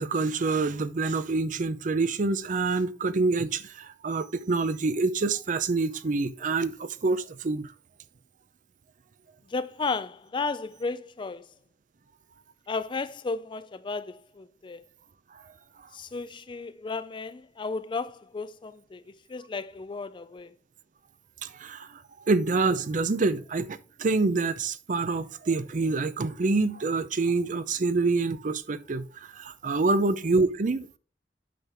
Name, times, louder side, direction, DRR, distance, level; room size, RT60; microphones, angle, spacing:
voice 1, 0.0-7.7 21.4-22.0 22.3-31.0, right 3 dB, 45° right, 0.5 m, -26 dB
voice 2, 9.5-11.4 12.7-14.8 15.9-19.0 19.3-20.5, left 4 dB, 25° left, 0.4 m, -34 dB
8.5 x 5.8 x 3.5 m
head